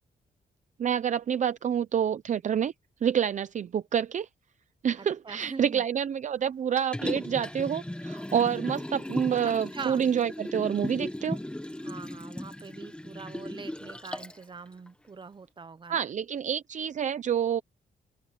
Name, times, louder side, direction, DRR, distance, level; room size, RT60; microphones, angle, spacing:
voice 1, 0.8-2.7 3.0-4.3 4.8-11.4 15.9-17.6, right 8 dB, 45° right, 0.6 m, -28 dB
voice 2, 5.0-5.8 9.4-10.0 11.8-16.1, right 5 dB, 30° right, 1.1 m, -43 dB
Liquid, 6.8-14.4 14.9-15.0, left 1 dB, 5° left, 1.5 m, -36 dB
open air
wide cardioid pair, 135°, 17 cm